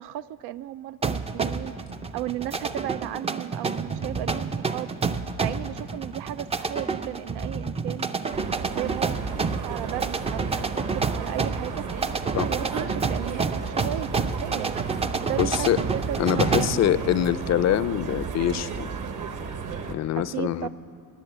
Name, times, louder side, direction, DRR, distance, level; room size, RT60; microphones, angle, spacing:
voice 1, 0.0-1.8 2.1-4.9 5.4-8.2 8.8-11.9 12.2-14.8 15.2-17.2 20.1-20.7, right 13 dB, 80° right, 15 dB, 0.5 m, -35 dB
sound 1, 1.0-16.9, right 4 dB, 15° right, 0.4 m, -29 dB
sound 2, 8.3-19.9, right 6 dB, 50° right, 1.2 m, -34 dB
voice 2, 15.4-15.8 16.2-18.9 19.9-20.7, left 11 dB, 45° left, 15 dB, 0.5 m, -24 dB
19.0 x 7.4 x 8.7 m, 2.6 s
cardioid pair, 105°, 40 cm